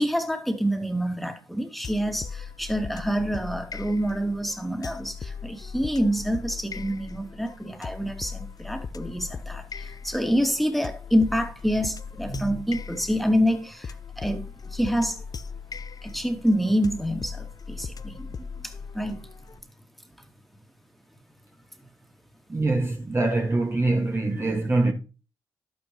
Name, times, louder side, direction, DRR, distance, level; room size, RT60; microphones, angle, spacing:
voice 1, 0.0-14.4 14.7-15.2 16.0-18.2 18.6-19.2, equal, ahead, 2.4 m, -27 dB
sound 1, 1.8-19.6, left 5 dB, 40° left, 0.8 m, -38 dB
voice 2, 18.1-18.7 22.5-24.9, right 2 dB, 25° right, 1.9 m, -25 dB
11.5 x 8.8 x 3.1 m
hypercardioid pair, 40°, 10 cm